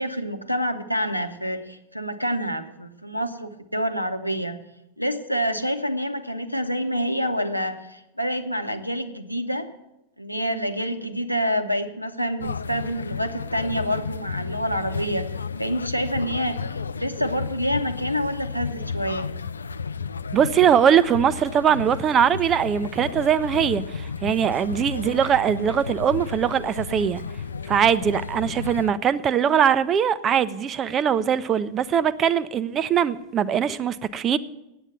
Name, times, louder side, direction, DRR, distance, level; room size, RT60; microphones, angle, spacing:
voice 1, 0.0-4.6 5.0-9.7 10.2-15.3 15.6-19.3, equal, 90° left, 0.9 m, -27 dB
sound 1, 12.4-28.9, left 5 dB, 75° left, 0.4 m, -33 dB
voice 2, 20.3-27.2 27.7-34.4, right 8 dB, 25° right, 0.5 m, -21 dB
9.0 x 8.6 x 8.9 m
figure-of-eight pair, 90°, 0 cm